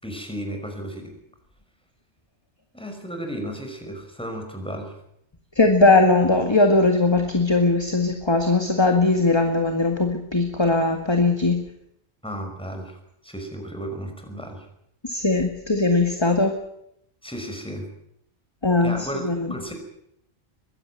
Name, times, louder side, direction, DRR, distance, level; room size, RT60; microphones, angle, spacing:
voice 1, 0.0-1.1 2.7-4.9 12.2-14.7 17.2-17.9 18.8-19.7, equal, 5° left, 4 dB, 5.6 m, -34 dB
voice 2, 5.6-11.6 15.0-16.5 18.6-19.0 19.2-19.5, left 3 dB, 25° left, 5 dB, 2.0 m, -19 dB
22.5 x 16.0 x 9.3 m, 0.76 s
omnidirectional pair, 1.2 m